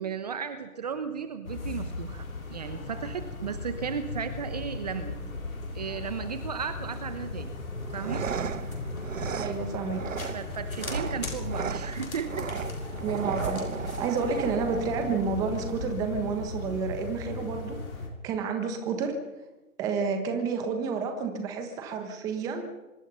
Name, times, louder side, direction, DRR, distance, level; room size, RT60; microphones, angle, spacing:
voice 1, 0.0-5.2 5.7-7.5 7.9-8.2 10.3-12.7, right 7 dB, 30° right, 10 dB, 1.1 m, -35 dB
sound 1, 1.4-18.1, left 3 dB, 70° left, 6.6 m, -37 dB
sound 2, 7.8-15.8, right 7 dB, 60° right, 0.9 m, -36 dB
voice 2, 9.4-10.0 13.0-17.8 18.2-19.1 19.8-22.6, right 5 dB, 10° right, 6 dB, 1.3 m, -30 dB
25.0 x 23.5 x 5.6 m, 1.1 s
figure-of-eight pair, 155°, 43 cm